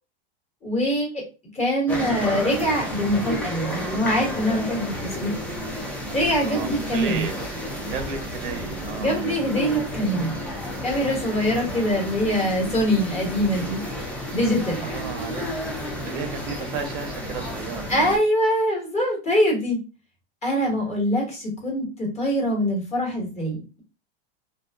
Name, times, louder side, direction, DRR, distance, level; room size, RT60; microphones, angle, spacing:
voice 1, 0.6-1.2 1.5-5.4 6.1-7.2 9.0-10.4 10.8-13.8 14.3-14.8 17.9-19.8 20.4-23.8, equal, 20° left, -1 dB, 1.1 m, -23 dB
sound 1, 1.9-18.2, equal, 5° left, 0.4 m, -31 dB
voice 2, 6.5-7.5 7.9-9.2 14.8-15.8 16.0-17.9 20.6-21.0, right 5 dB, 55° right, 6 dB, 0.6 m, -34 dB
2.5 x 2.3 x 2.3 m, 0.31 s
supercardioid pair, 135°, 31 cm